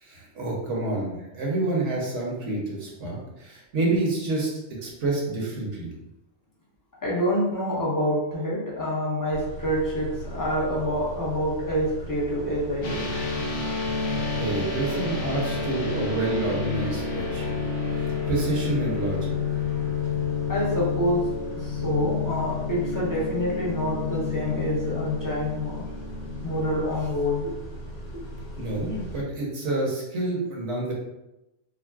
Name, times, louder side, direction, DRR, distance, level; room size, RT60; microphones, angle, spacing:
voice 1, 0.0-4.5 4.8-5.9 14.0-17.5 18.3-19.3 28.6-30.9, right 2 dB, 70° right, -3 dB, 1.2 m, -28 dB
voice 2, 7.0-13.1 20.5-21.3 21.5-25.9 26.4-27.5 28.1-28.2, equal, 20° left, -4 dB, 0.6 m, -27 dB
Car / Idling / Accelerating revving vroom, 9.3-29.2, equal, 80° left, 1.5 m, -39 dB
sound 1, 12.8-27.0, left 5 dB, 55° left, 0.8 m, -30 dB
4.7 x 2.0 x 2.3 m, 0.93 s
omnidirectional pair, 1.2 m